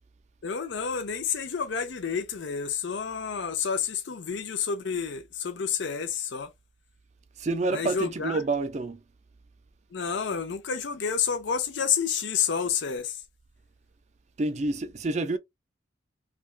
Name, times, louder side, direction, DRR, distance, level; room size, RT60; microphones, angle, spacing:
voice 1, 0.4-6.5 7.7-8.4 9.9-13.2, left 7 dB, 65° left, 0.5 m, -29 dB
voice 2, 7.4-9.0 14.4-15.4, right 2 dB, 35° right, 0.4 m, -28 dB
3.3 x 2.2 x 2.3 m
head